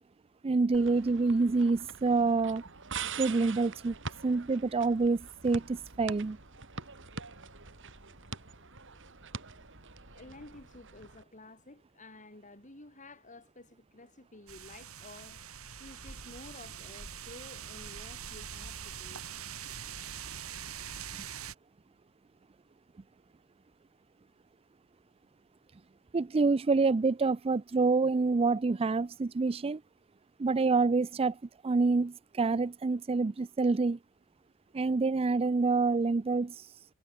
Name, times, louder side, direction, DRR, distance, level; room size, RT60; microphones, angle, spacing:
voice 1, 0.4-2.6 3.2-3.9 4.2-6.4 26.1-29.8 30.4-34.0 34.7-36.7, right 3 dB, 25° right, 0.4 m, -27 dB
sound 1, 0.7-11.2, right 5 dB, 60° right, 7.4 m, -44 dB
voice 2, 10.1-15.4 15.8-19.7, left 2 dB, 35° left, 5.9 m, -52 dB
sound 2, 14.5-21.5, right 8 dB, 85° right, 4.4 m, -43 dB
head